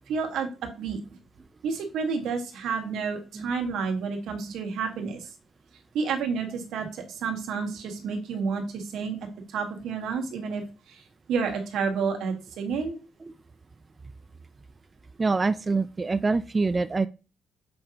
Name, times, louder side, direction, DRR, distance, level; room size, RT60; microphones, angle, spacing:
voice 1, 0.1-0.5 0.8-1.0 1.6-5.3 5.9-9.2 9.5-10.6 10.9-11.0 11.3-13.0, right 5 dB, 80° right, 4 dB, 1.6 m, -30 dB
voice 2, 15.2-17.1, right 3 dB, 25° right, 12 dB, 0.3 m, -25 dB
6.9 x 5.1 x 2.9 m, 0.32 s
cardioid pair, 90°, 0 cm